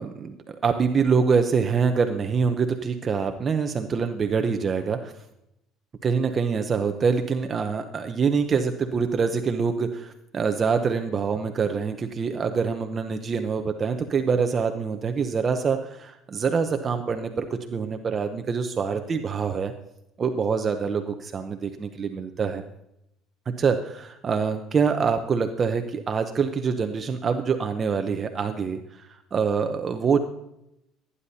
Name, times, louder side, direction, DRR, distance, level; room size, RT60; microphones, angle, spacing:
voice 1, 0.0-5.1 6.0-19.7 20.2-22.6 23.5-30.2, right 5 dB, 30° right, 6 dB, 0.8 m, -25 dB
17.0 x 9.8 x 2.8 m, 0.82 s
cardioid pair, 115°, 0 cm